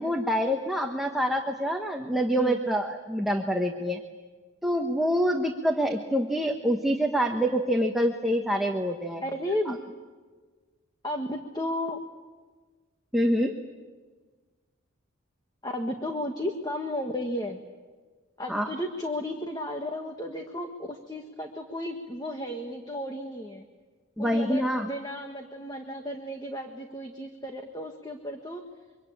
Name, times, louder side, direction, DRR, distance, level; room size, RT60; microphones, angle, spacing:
voice 1, 0.0-4.0 4.6-9.2 9.7-9.8 13.1-13.6 18.5-18.7 24.2-24.9, equal, ahead, 2 dB, 1.2 m, -26 dB
voice 2, 9.2-9.8 11.0-12.0 15.6-17.6 18.4-23.6 24.2-28.6, left 1 dB, 20° left, 4 dB, 1.5 m, -33 dB
25.5 x 24.5 x 8.6 m, 1.4 s
head